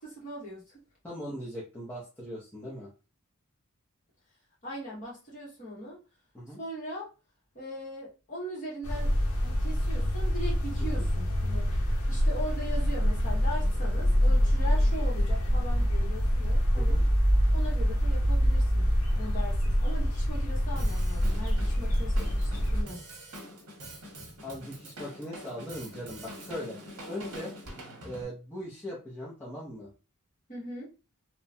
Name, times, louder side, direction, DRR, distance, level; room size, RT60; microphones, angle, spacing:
voice 1, 0.0-0.8 4.6-6.0 6.6-7.1 7.5-9.1 9.4-11.7 12.1-17.0 17.5-18.9 19.2-23.1 30.5-30.9, equal, 35° left, -5 dB, 1.3 m, -40 dB
voice 2, 1.0-2.9 6.3-6.6 10.8-11.1 16.7-17.0 24.4-26.8 27.0-27.5 28.0-29.9, equal, 10° left, -7 dB, 0.6 m, -39 dB
sound 1, 8.8-22.8, equal, 75° left, 0.7 m, -26 dB
Drum kit, 20.8-28.3, equal, 90° right, 0.9 m, -45 dB
2.9 x 2.1 x 2.6 m, 0.31 s
head